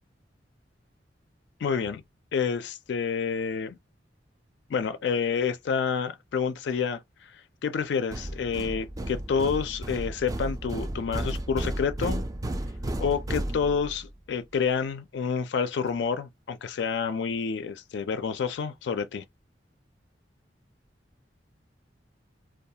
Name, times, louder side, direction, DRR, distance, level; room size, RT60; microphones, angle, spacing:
voice 1, 1.6-2.0 2.3-3.8 4.7-12.2 13.0-19.2, left 6 dB, 70° left, 0.4 m, -29 dB
sound 1, 8.1-14.1, right 1 dB, 20° right, 0.3 m, -33 dB
2.3 x 2.3 x 2.7 m
head